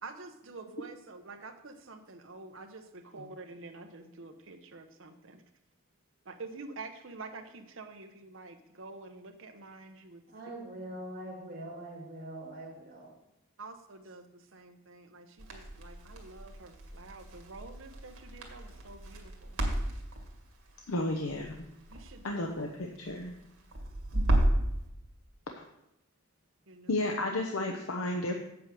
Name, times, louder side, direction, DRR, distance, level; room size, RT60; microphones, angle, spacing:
voice 1, 0.0-5.4 6.2-10.2 13.6-19.6 21.9-22.4 26.7-27.1, right 3 dB, 60° right, 6 dB, 0.9 m, -48 dB
voice 2, 10.3-13.1, right 1 dB, 40° right, -2 dB, 2.6 m, -43 dB
Crackle, 15.4-24.7, right 1 dB, 85° right, 1.9 m, -34 dB
voice 3, 20.9-21.7 22.2-23.3 25.6-25.7 26.9-28.4, left 1 dB, 70° left, 2 dB, 0.8 m, -32 dB
8.2 x 4.8 x 7.4 m, 0.87 s
head